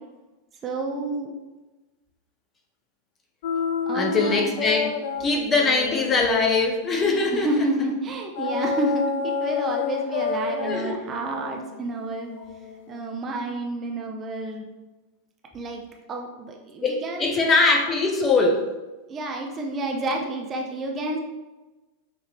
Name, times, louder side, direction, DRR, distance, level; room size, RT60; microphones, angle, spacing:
voice 1, 0.6-1.3 3.9-4.4 7.3-12.3 12.9-14.7 15.5-15.8 16.1-17.5 19.1-21.2, right 2 dB, 25° right, 1 dB, 0.6 m, -29 dB
sound 1, 3.4-7.6 8.3-13.1, left 6 dB, 50° left, 0.4 m, -30 dB
voice 2, 3.9-4.9 5.2-7.7 10.6-10.9 16.8-18.6, left 3 dB, 20° left, 1 dB, 0.8 m, -22 dB
5.8 x 2.8 x 3.2 m, 1.1 s
figure-of-eight pair, 90°, 0 cm